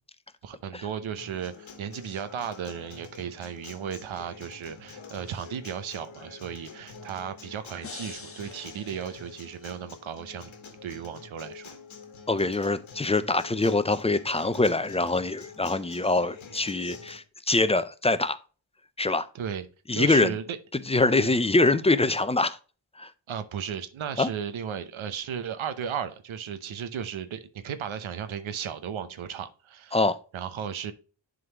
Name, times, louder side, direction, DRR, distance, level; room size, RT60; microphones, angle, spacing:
voice 1, 0.4-10.5 10.8-11.7 19.3-19.7 19.9-20.6 21.2-21.3 23.3-30.0 30.3-30.9, right 8 dB, 85° right, 0.8 m, -35 dB
Acoustic guitar, 1.2-17.2, left 5 dB, 90° left, 1.4 m, -47 dB
sound 1, 7.8-9.9, left 4 dB, 30° left, 0.8 m, -46 dB
voice 2, 12.3-18.4 19.0-19.3 19.9-20.3 20.9-22.6 23.0-23.1 24.2-24.3 29.9-30.2, left 2 dB, 15° left, 0.4 m, -24 dB
11.0 x 3.9 x 2.9 m
wide cardioid pair, 105°, 46 cm